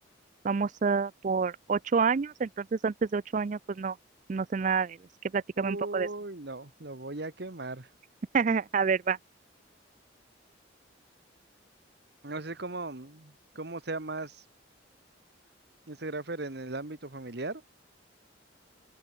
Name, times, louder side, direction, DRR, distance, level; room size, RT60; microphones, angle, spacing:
voice 1, 0.4-4.0 4.3-5.0 5.3-6.1 8.3-9.2, right 5 dB, 40° right, 0.4 m, -28 dB
voice 2, 5.6-7.9 12.2-14.4 15.9-17.6, right 2 dB, 55° right, 1.6 m, -37 dB
head